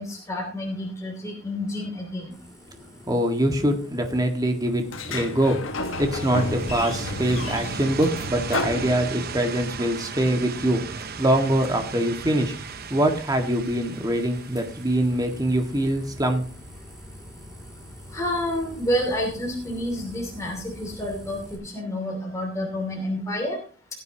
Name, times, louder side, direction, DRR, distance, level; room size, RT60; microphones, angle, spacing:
voice 1, 0.0-2.4 18.1-23.6, left 1 dB, 15° left, -1 dB, 2.8 m, -29 dB
sound 1, 2.3-21.6, equal, 5° right, 2.6 m, -46 dB
voice 2, 3.1-5.6 5.9-12.5 12.9-16.4, right 1 dB, 20° right, 4 dB, 1.7 m, -24 dB
Sliding door, 4.9-9.6, left 3 dB, 75° left, 1.3 m, -31 dB
sound 2, 5.8-16.5, right 5 dB, 50° right, 0.8 m, -37 dB
18.5 x 9.4 x 2.9 m, 0.38 s
head